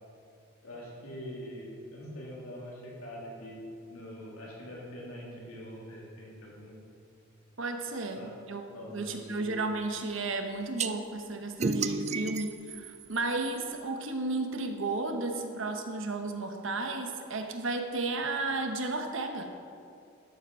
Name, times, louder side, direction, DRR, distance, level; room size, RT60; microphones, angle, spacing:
voice 1, 0.6-3.6 3.9-6.8 8.2-8.3 8.7-9.6, equal, 85° left, -5 dB, 3.2 m, -44 dB
voice 2, 7.6-8.6 8.9-19.5, right 3 dB, 65° right, 5 dB, 1.1 m, -33 dB
sound 1, 10.8-10.9 11.6-13.8, right 4 dB, 30° right, 0.4 m, -33 dB
12.0 x 8.0 x 5.5 m, 2.5 s
head